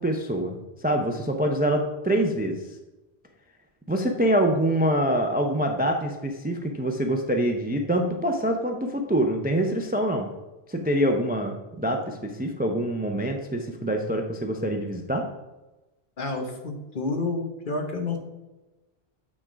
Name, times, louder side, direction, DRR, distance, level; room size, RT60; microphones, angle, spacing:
voice 1, 0.0-2.6 3.9-10.3 10.7-15.3, right 1 dB, 15° right, 3 dB, 0.4 m, -25 dB
voice 2, 16.2-18.2, left 3 dB, 55° left, 3 dB, 1.1 m, -29 dB
8.5 x 3.7 x 5.0 m, 1.1 s
omnidirectional pair, 1.1 m